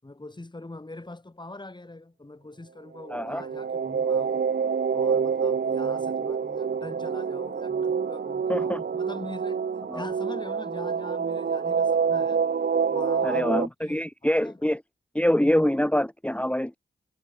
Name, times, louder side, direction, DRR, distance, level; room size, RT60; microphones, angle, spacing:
voice 1, 0.0-4.5 4.9-12.4 12.9-14.6, left 2 dB, 25° left, 7.4 m, -42 dB
sound 1, 3.0-13.7, right 6 dB, 60° right, 2.4 m, -27 dB
voice 2, 3.1-3.4 8.5-8.8 9.9-10.0 13.2-14.8 15.1-16.8, left 1 dB, 5° left, 1.5 m, -25 dB
cardioid pair, 55°, 19 cm